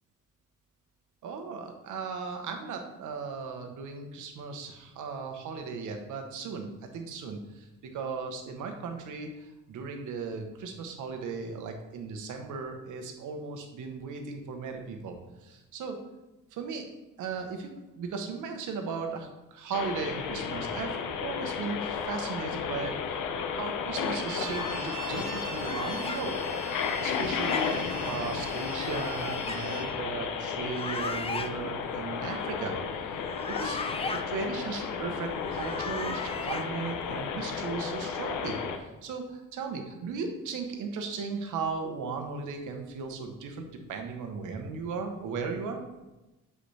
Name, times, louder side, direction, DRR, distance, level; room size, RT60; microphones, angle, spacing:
voice 1, 1.2-7.7 7.9-15.2 15.4-16.0 16.5-16.8 17.2-23.2 23.5-26.4 27.0-32.7 33.5-33.8 34.1-38.6 39.0-45.8, right 5 dB, 80° right, 4 dB, 1.2 m, -36 dB
sound 1, 19.7-38.8, left 6 dB, 80° left, 0.8 m, -33 dB
Bowed string instrument, 23.9-29.9, right 3 dB, 60° right, 1.7 m, -43 dB
sound 2, 25.6-26.2 27.1-27.6 28.7-29.6 30.6-31.5 33.2-34.2 35.3-36.6, left 3 dB, 20° left, 0.5 m, -37 dB
7.9 x 4.8 x 3.4 m, 1.0 s
cardioid pair, 90°, 30 cm